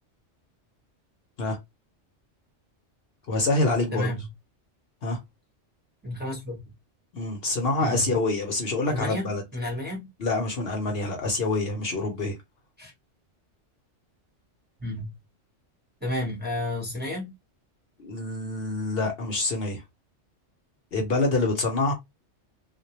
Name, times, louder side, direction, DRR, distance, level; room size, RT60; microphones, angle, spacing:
voice 1, 3.3-4.1 5.0-5.2 7.1-9.4 10.2-12.4 18.0-19.8 20.9-21.9, left 2 dB, 60° left, 0.9 m, -26 dB
voice 2, 3.9-4.3 6.0-6.7 7.8-8.1 8.9-10.1 12.8-12.9 14.8-15.1 16.0-17.3, left 1 dB, 10° right, 0.8 m, -31 dB
2.2 x 2.1 x 2.9 m
omnidirectional pair, 1.2 m